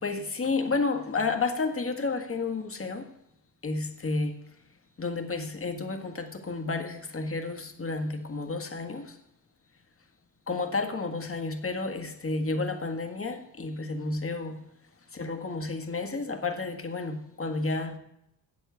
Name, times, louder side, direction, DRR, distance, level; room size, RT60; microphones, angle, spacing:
voice 1, 0.0-3.1 3.6-4.4 5.0-9.2 10.5-14.7 15.1-18.0, left 3 dB, 35° left, 1.7 m, -31 dB
7.9 x 7.5 x 8.1 m
cardioid pair, 60°, 39 cm